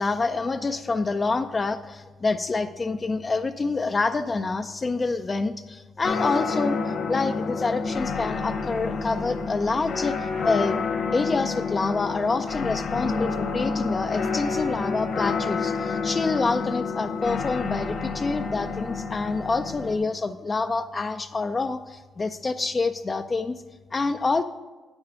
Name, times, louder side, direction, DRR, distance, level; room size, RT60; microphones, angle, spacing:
voice 1, 0.0-10.8 11.1-23.6 23.9-24.4, left 3 dB, 30° left, 8 dB, 0.3 m, -27 dB
sound 1, 6.0-20.0, left 4 dB, 65° left, 1.3 m, -29 dB
8.5 x 6.2 x 5.2 m, 1.3 s
cardioid pair, 90°, 0 cm